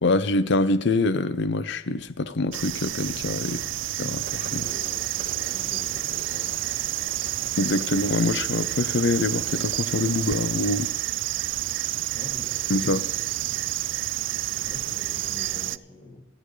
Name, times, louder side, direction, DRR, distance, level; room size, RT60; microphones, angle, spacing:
voice 1, 0.0-3.6 4.0-4.7 7.6-10.9 12.7-13.0, left 2 dB, 60° left, 14 dB, 0.7 m, -25 dB
sound 1, 2.5-15.8, right 15 dB, 65° right, 0.3 m, -29 dB
voice 2, 3.4-3.8 4.5-6.6 12.1-13.6 14.5-16.3, left 1 dB, 30° left, 0 dB, 2.7 m, -45 dB
sound 2, 4.2-10.9, right 3 dB, 50° right, 2.7 m, -43 dB
17.0 x 12.5 x 3.3 m, 0.89 s
head